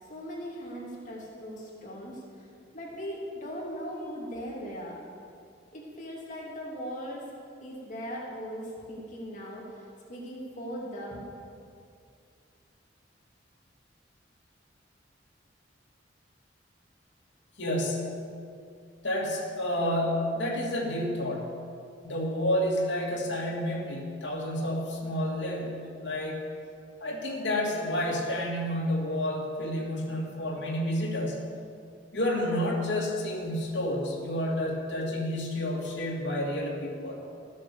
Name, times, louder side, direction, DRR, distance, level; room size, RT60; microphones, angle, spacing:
voice 1, 0.1-4.9 5.7-7.3 7.6-11.2, equal, 40° left, -4 dB, 2.7 m, -39 dB
voice 2, 17.6-18.2 19.0-21.5 22.0-26.4 27.0-31.4 32.1-37.2, left 1 dB, 75° left, -2 dB, 2.6 m, -30 dB
14.5 x 8.3 x 7.0 m, 2.4 s
head